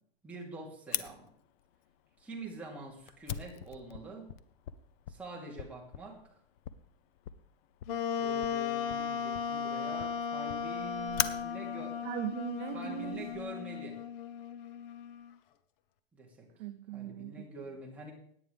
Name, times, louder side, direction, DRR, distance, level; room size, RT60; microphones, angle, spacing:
voice 1, 0.2-1.3 2.2-4.3 5.1-6.2 8.2-12.0 12.7-14.0 16.1-16.5 16.9-18.1, right 2 dB, 5° right, -4 dB, 2.6 m, -45 dB
Fire, 0.9-13.4, left 11 dB, 90° left, 0.8 m, -43 dB
Wind instrument woodwind instrument, 7.9-15.3, left 7 dB, 65° left, 1.0 m, -36 dB
voice 2, 12.0-13.3 16.6-17.5, right 14 dB, 55° right, 9 dB, 0.6 m, -39 dB
17.0 x 9.8 x 3.4 m, 0.63 s
supercardioid pair, 160°, 30 cm